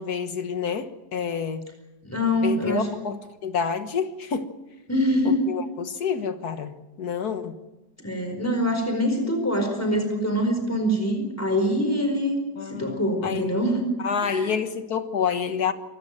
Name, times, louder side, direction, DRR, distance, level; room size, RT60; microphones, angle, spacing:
voice 1, 0.0-1.7 2.4-4.5 5.2-7.5 12.6-13.5 14.0-15.7, left 6 dB, 65° left, 10 dB, 1.8 m, -28 dB
voice 2, 2.0-2.9 4.9-5.5 8.0-12.4 12.7-13.9 14.2-14.5, equal, 10° left, 5 dB, 4.7 m, -24 dB
26.0 x 14.0 x 8.9 m, 1.1 s
omnidirectional pair, 1.9 m